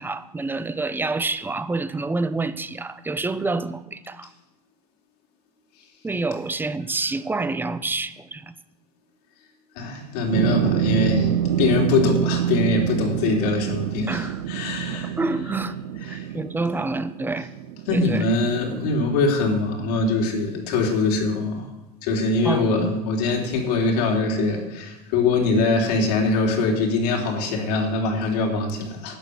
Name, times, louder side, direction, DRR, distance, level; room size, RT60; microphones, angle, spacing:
voice 1, 0.0-4.3 6.0-8.5 14.1-14.6 14.9-15.8 16.0-17.5 17.9-18.2 22.4-23.0, right 3 dB, 10° right, 13 dB, 0.8 m, -28 dB
voice 2, 9.7-15.1 16.1-16.2 17.9-21.7 22.0-29.2, left 3 dB, 75° left, 1 dB, 3.4 m, -23 dB
sound 1, 10.3-19.3 19.7-19.8, right 10 dB, 75° right, 0.6 m, -26 dB
11.5 x 6.9 x 9.5 m, 1.0 s
supercardioid pair, 100°, 20 cm